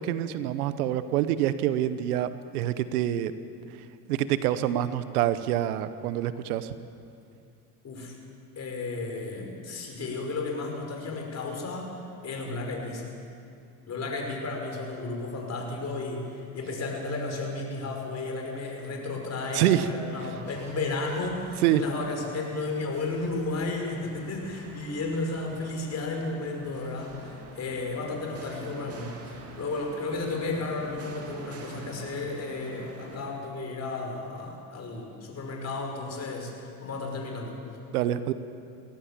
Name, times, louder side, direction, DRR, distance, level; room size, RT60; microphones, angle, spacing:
voice 1, 0.0-3.3 4.1-6.7 19.5-19.9 21.6-21.8 37.9-38.3, right 12 dB, 85° right, 13 dB, 1.0 m, -26 dB
voice 2, 7.8-8.2 8.6-12.0 12.2-13.1 13.9-37.6, left 3 dB, 35° left, 2 dB, 5.4 m, -33 dB
sound 1, 20.3-33.2, right 3 dB, 35° right, 2.8 m, -47 dB
20.0 x 17.5 x 7.4 m, 2.5 s
supercardioid pair, 90°, 44 cm